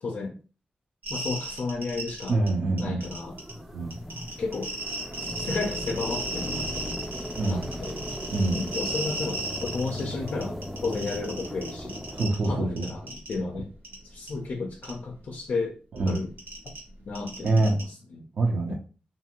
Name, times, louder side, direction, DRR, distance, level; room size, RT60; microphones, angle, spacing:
voice 1, 0.0-0.4 1.1-2.4 2.8-3.4 4.4-4.7 5.2-7.0 7.5-8.0 8.5-12.1 12.4-13.7 14.0-15.8 16.0-16.3 16.6-16.7 17.1-18.3 18.7-18.8, left 3 dB, 60° left, 2 dB, 0.4 m, -33 dB
sound 1, 1.0-2.5 2.8-3.5 3.9-10.0 10.3-12.5 12.8-13.3 13.8-14.0 14.3-14.4 14.8-14.9 16.0-17.8, right 2 dB, 85° right, 1.0 m, -34 dB
voice 2, 2.3-3.0 3.7-3.9 7.4-7.6 8.3-8.6 12.1-12.9 15.9-16.2 17.4-17.8 18.4-18.7, right 2 dB, 70° right, -2 dB, 0.5 m, -25 dB
sound 2, 3.0-12.2, equal, 5° right, 0.4 m, -37 dB
2.6 x 2.4 x 2.8 m, 0.36 s
wide cardioid pair, 130°, 3 cm